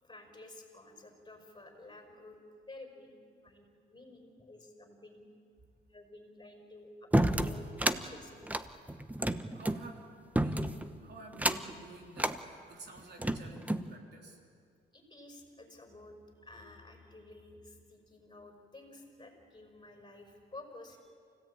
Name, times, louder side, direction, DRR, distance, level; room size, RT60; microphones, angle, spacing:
voice 1, 0.0-2.4 2.7-3.2 3.4-5.2 5.9-8.5 14.9-16.2 16.4-21.2, left 2 dB, 25° left, 4 dB, 5.6 m, -52 dB
sound 1, 7.1-8.0 8.4-9.8 10.4-10.9 11.3-11.8 12.2-12.4 13.0-13.9, right 1 dB, 10° right, 1.0 m, -30 dB
voice 2, 9.5-14.4, right 3 dB, 55° right, 1 dB, 3.6 m, -51 dB
28.5 x 17.0 x 8.9 m, 2.3 s
cardioid pair, 90°, 20 cm